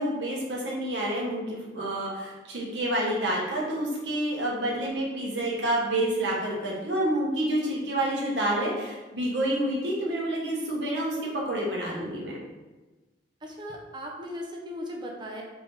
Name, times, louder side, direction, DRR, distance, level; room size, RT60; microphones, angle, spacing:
voice 1, 0.0-12.4, right 1 dB, 75° right, -4 dB, 1.0 m, -28 dB
voice 2, 13.4-15.4, equal, 25° right, -1 dB, 0.6 m, -38 dB
3.7 x 2.6 x 3.4 m, 1.2 s
head